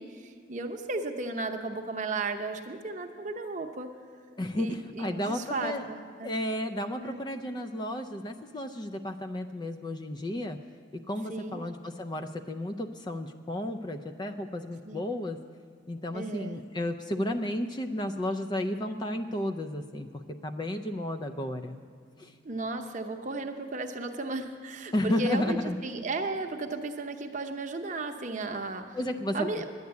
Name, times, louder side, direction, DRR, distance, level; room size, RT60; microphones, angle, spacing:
voice 1, 0.0-3.9 4.6-6.3 7.0-7.2 11.3-11.6 14.8-15.0 16.1-16.6 22.4-29.0 29.3-29.6, right 3 dB, 40° right, 5 dB, 0.8 m, -35 dB
voice 2, 4.4-5.9 6.2-10.6 10.9-15.4 15.9-21.8 22.2-22.3 24.9-25.8 28.9-29.5, left 1 dB, 20° left, 7 dB, 0.4 m, -33 dB
10.5 x 9.5 x 8.1 m, 2.2 s
head